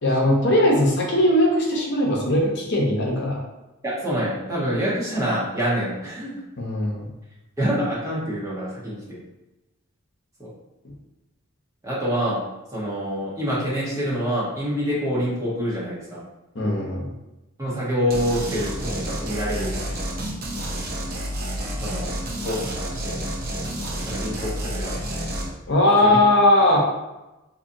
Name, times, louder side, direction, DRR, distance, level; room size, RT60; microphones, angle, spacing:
voice 1, 0.0-3.4 6.6-7.1 16.5-17.1 25.7-26.8, left 1 dB, 55° left, -2 dB, 0.8 m, -19 dB
voice 2, 3.8-6.4 7.6-9.2 10.4-10.5 11.8-12.4 12.7-16.2 17.6-20.2 21.8-22.1 22.4-23.2 24.1-25.0 26.0-26.2, equal, 15° right, -7 dB, 1.0 m, -26 dB
sound 1, 18.1-25.5, right 1 dB, 45° right, 0.6 m, -30 dB
4.1 x 2.8 x 2.6 m, 1.0 s
head